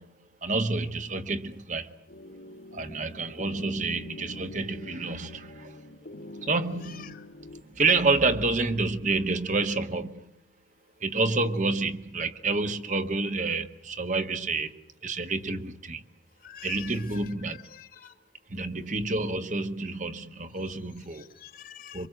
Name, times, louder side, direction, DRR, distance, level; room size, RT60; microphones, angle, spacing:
voice 1, 0.0-2.0 2.7-5.8 6.4-7.3 7.6-10.3 11.0-14.8 15.0-16.0 16.6-17.7 18.5-21.3 21.9-22.1, right 3 dB, 40° right, 1.4 m, -29 dB
sound 1, 2.1-7.6, left 1 dB, 80° left, 2.3 m, -45 dB
voice 2, 6.9-7.2 16.4-18.1 20.5-20.6 21.1-22.1, left 8 dB, 50° left, 1.8 m, -46 dB
27.0 x 24.5 x 7.7 m
head